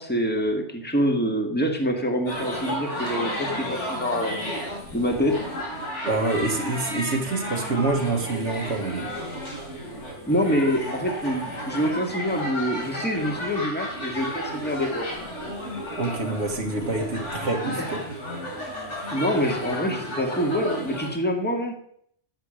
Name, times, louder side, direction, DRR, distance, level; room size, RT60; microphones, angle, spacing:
voice 1, 0.0-4.4 4.9-5.5 10.3-15.1 19.1-21.7, equal, 10° left, 2 dB, 1.9 m, -25 dB
sound 1, 2.3-21.1, equal, 85° left, 3.9 m, -33 dB
voice 2, 6.0-9.1 16.0-18.0, right 3 dB, 80° right, 1 dB, 2.0 m, -26 dB
13.5 x 7.6 x 6.5 m, 0.66 s
omnidirectional pair, 1.2 m